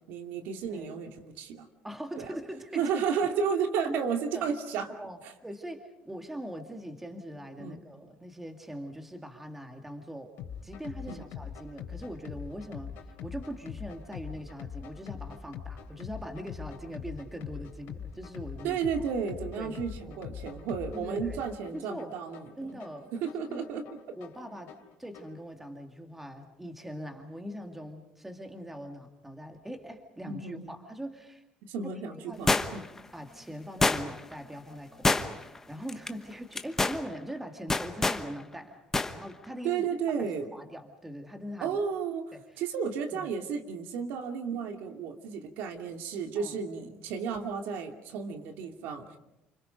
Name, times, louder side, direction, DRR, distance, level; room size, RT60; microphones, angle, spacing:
voice 1, 0.1-1.7 2.2-2.3 2.7-4.9 5.2-5.3 7.6-7.8 11.1-11.2 18.6-22.5 23.1-24.0 30.3-30.7 31.7-32.8 39.6-40.5 41.6-49.2, right 6 dB, 75° right, 5 dB, 2.6 m, -33 dB
voice 2, 1.8-3.1 3.8-4.1 4.3-4.5 5.0-10.4 10.6-19.1 19.6-19.8 20.0-20.2 20.9-21.4 21.7-22.1 22.6-23.1 23.5-23.7 24.2-31.4 31.8-32.0 32.3-32.6 33.1-38.8 39.1-39.9 40.5-41.8 42.3-42.4 43.1-43.2 46.4-46.6, equal, 5° right, 4 dB, 2.2 m, -42 dB
sound 1, 10.4-25.4, left 8 dB, 75° left, 3.1 m, -43 dB
sound 2, 32.5-33.0 33.8-34.3 35.0-35.6 35.9-36.1 36.5-37.0 37.7-38.2 38.9-39.1 39.4-39.5, left 3 dB, 10° left, 1.1 m, -26 dB
29.0 x 26.5 x 5.2 m, 0.89 s
cardioid pair, 160°, 4 cm